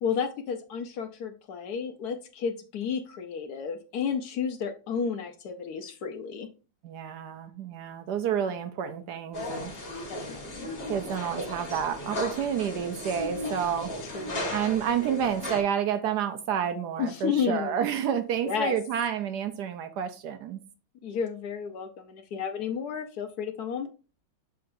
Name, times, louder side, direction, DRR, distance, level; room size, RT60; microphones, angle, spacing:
voice 1, 0.0-6.5 10.1-10.7 14.1-14.5 17.0-17.9 18.4-18.7 21.0-23.9, left 6 dB, 65° left, 1.1 m, -32 dB
voice 2, 6.8-10.1 10.8-20.6, right 8 dB, 70° right, 1.1 m, -30 dB
sound 1, 9.3-15.6, left 1 dB, 35° left, 1.6 m, -36 dB
6.5 x 5.7 x 2.6 m
omnidirectional pair, 2.0 m